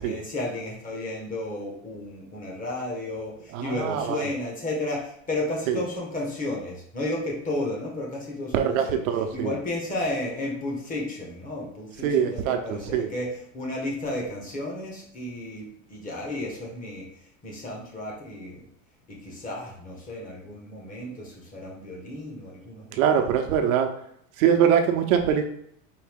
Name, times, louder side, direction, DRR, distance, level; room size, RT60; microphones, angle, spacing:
voice 1, 0.0-9.0 9.3-18.7 19.1-23.0, left 1 dB, 20° left, -2 dB, 1.2 m, -33 dB
voice 2, 3.5-4.2 5.7-5.8 8.5-9.5 12.0-13.1 22.9-23.9 24.4-25.5, right 8 dB, 85° right, 6 dB, 0.8 m, -23 dB
4.8 x 2.7 x 3.5 m, 0.71 s
supercardioid pair, 150°, 40 cm